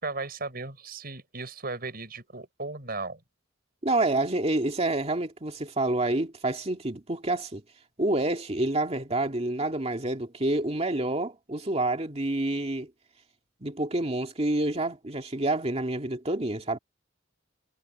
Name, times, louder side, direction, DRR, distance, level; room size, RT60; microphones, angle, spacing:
voice 1, 0.0-3.2, right 3 dB, 50° right, 6.7 m, -36 dB
voice 2, 3.8-7.6 8.0-12.9 13.6-16.8, right 2 dB, 30° right, 2.2 m, -28 dB
head